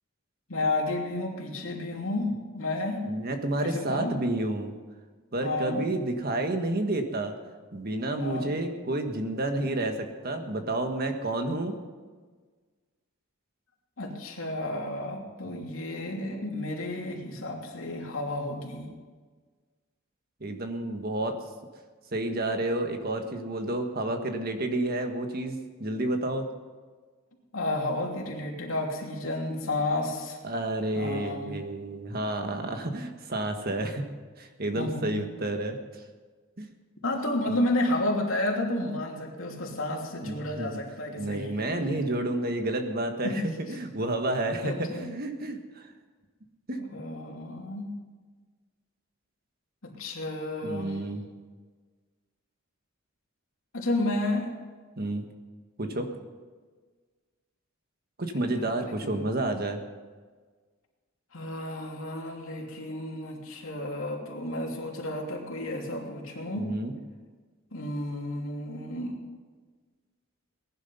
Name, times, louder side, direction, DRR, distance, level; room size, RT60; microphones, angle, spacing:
voice 1, 0.5-3.0 3.6-4.1 5.4-5.8 8.2-8.5 14.0-18.9 27.5-30.4 30.9-31.6 34.8-35.2 37.0-41.7 43.2-43.5 44.6-45.1 46.7-47.9 49.8-51.0 53.7-54.5 58.4-59.2 61.3-66.7 67.7-69.2, left 1 dB, 75° left, 0 dB, 2.9 m, -31 dB
voice 2, 3.0-4.7 5.3-7.3 7.7-11.8 20.4-21.4 22.1-26.5 30.4-34.0 34.4-36.0 36.6-36.7 40.2-40.8 41.2-45.9 46.7-46.8 50.6-51.3 55.0-55.3 55.8-56.1 58.2-59.8 66.5-66.9, right 1 dB, 45° right, 5 dB, 1.5 m, -30 dB
19.0 x 11.0 x 5.6 m, 1.4 s
head